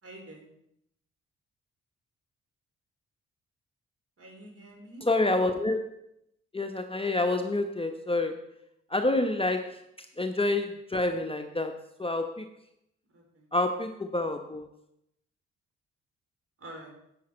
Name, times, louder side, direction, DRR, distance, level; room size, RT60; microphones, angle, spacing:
voice 1, 0.0-0.5 4.2-5.1 13.1-13.5 16.6-16.9, right 1 dB, 40° right, 2 dB, 3.8 m, -47 dB
voice 2, 5.1-5.8 6.5-8.4 8.9-9.8 10.2-12.4 13.5-14.7, left 2 dB, 15° left, 5 dB, 1.0 m, -28 dB
11.0 x 8.7 x 4.5 m, 0.78 s
hypercardioid pair, 40°, 35 cm